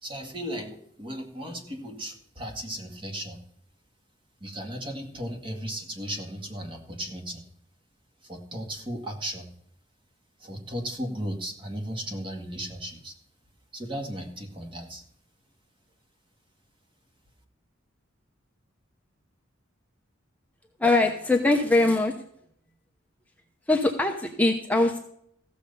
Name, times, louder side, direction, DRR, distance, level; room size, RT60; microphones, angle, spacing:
voice 1, 0.0-3.4 4.4-7.4 8.2-9.5 10.4-13.1 13.7-15.0, equal, 25° right, 3 dB, 2.0 m, -36 dB
voice 2, 20.8-22.1 23.7-25.0, left 2 dB, 10° left, 2 dB, 0.9 m, -22 dB
15.0 x 7.0 x 5.4 m, 0.69 s
head